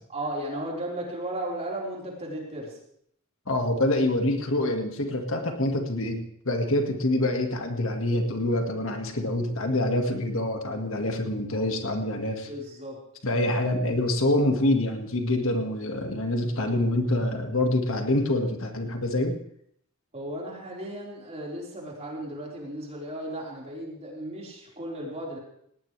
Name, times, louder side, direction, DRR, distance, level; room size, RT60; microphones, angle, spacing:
voice 1, 0.1-2.8 12.5-13.0 20.1-25.4, right 1 dB, 30° right, -3 dB, 4.7 m, -35 dB
voice 2, 3.5-12.5 13.2-19.4, left 1 dB, 60° left, 4 dB, 2.0 m, -26 dB
19.0 x 18.5 x 3.4 m, 0.69 s
head